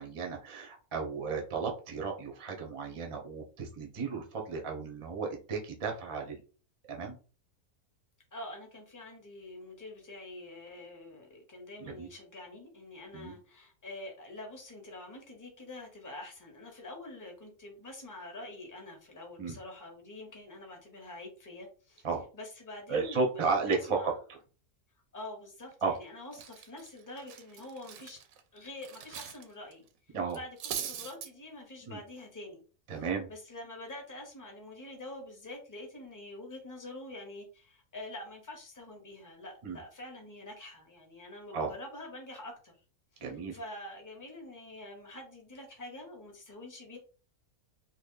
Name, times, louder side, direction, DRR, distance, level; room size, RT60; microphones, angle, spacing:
voice 1, 0.0-6.4 6.9-7.2 11.8-12.1 13.1-13.3 19.4-19.6 22.0-22.2 22.9-24.4 25.8-25.9 30.1-30.4 31.9-32.0 32.9-33.3 39.6-39.8 41.5-41.7 43.2-43.6, right 4 dB, 30° right, 0.6 m, -34 dB
voice 2, 8.3-22.1 22.3-24.2 25.1-28.2 28.5-32.6 32.9-42.7 43.1-47.0, left 2 dB, 15° left, 0.9 m, -46 dB
Cutlery silverware, 25.7-26.0 26.3-29.4 29.7-29.9 30.3-31.3, right 8 dB, 70° right, 1.0 m, -41 dB
3.3 x 2.3 x 3.7 m
omnidirectional pair, 1.6 m